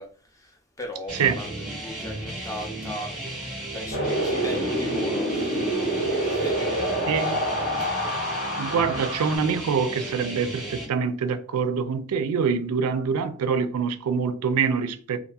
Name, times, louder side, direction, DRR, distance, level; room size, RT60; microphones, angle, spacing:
voice 1, 0.0-6.0 6.2-7.4 7.8-7.9, left 1 dB, 15° left, 0.4 m, -38 dB
sound 1, 1.1-10.9, right 1 dB, 5° right, 0.8 m, -35 dB
Wind, 3.9-9.4, right 1 dB, 45° left, 0.7 m, -27 dB
voice 2, 7.1-7.4 8.6-15.2, right 6 dB, 85° right, 0.4 m, -25 dB
2.7 x 2.5 x 2.3 m
head